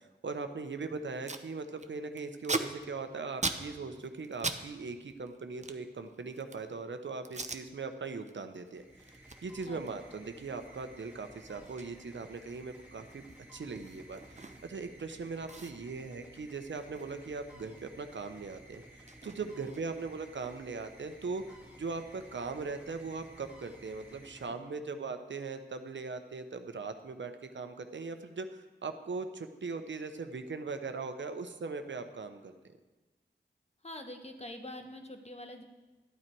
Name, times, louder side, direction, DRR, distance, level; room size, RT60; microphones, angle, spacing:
voice 1, 0.2-8.8 9.4-13.3 13.5-32.5, right 4 dB, 75° right, 8 dB, 0.9 m, -40 dB
Packing tape duct tape, 1.0-1.5 1.8-4.6 4.9-6.7 7.2-7.6 8.1-8.3 8.7-14.9 15.1-15.2 15.5-17.9 18.1-20.1, right 3 dB, 40° right, 0.8 m, -41 dB
sound 1, 8.6-25.2, right 1 dB, 10° right, 2.3 m, -55 dB
voice 2, 33.8-35.6, left 1 dB, 35° left, 5 dB, 1.3 m, -44 dB
12.5 x 8.9 x 4.6 m, 1.2 s
cardioid pair, 45°, 19 cm